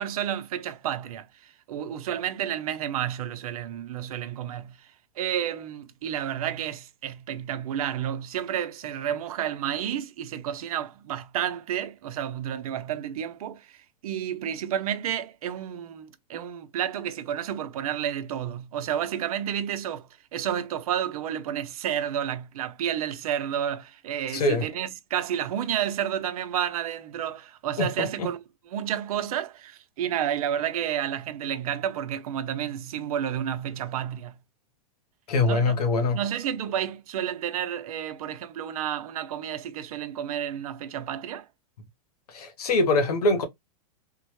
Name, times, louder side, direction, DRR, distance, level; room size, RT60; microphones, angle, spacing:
voice 1, 0.0-4.9 5.2-28.4 28.7-34.4 35.4-35.8 36.1-41.5, right 10 dB, 70° right, 0.7 m, -31 dB
voice 2, 24.3-24.7 27.8-28.3 35.3-36.2 42.3-43.5, left 2 dB, 85° left, 0.9 m, -23 dB
3.6 x 2.1 x 3.0 m
hypercardioid pair, 135°, 19 cm